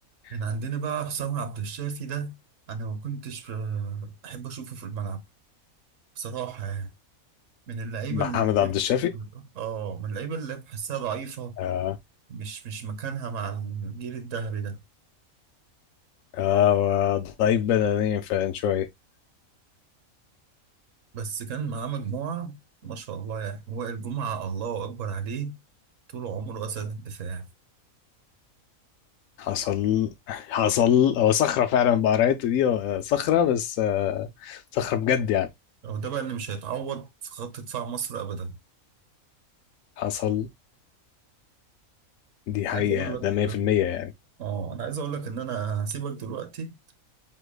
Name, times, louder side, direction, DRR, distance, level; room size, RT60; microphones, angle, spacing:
voice 1, 0.3-2.3 2.7-5.2 6.2-6.9 7.7-8.7 9.1-9.2 9.5-11.6 12.3-14.8 21.1-22.6 22.8-25.5 26.1-27.4 35.8-38.5 42.7-43.5 44.4-46.7, right 6 dB, 65° right, 1.4 m, -33 dB
voice 2, 8.1-9.1 11.6-12.0 16.3-18.9 29.4-35.5 40.0-40.5 42.5-44.1, left 10 dB, 75° left, 0.9 m, -24 dB
7.8 x 3.0 x 2.3 m
omnidirectional pair, 1.5 m